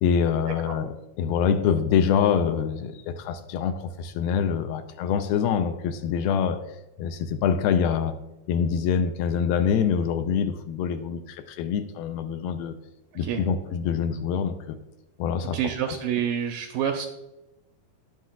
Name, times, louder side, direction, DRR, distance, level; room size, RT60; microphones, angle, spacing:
voice 1, 0.0-6.6 7.0-8.2 8.5-12.8 13.2-14.8 15.2-16.0, left 7 dB, 80° left, 8 dB, 2.4 m, -25 dB
voice 2, 15.5-17.1, right 9 dB, 85° right, 4 dB, 2.0 m, -27 dB
18.0 x 6.3 x 2.3 m, 0.95 s
omnidirectional pair, 4.4 m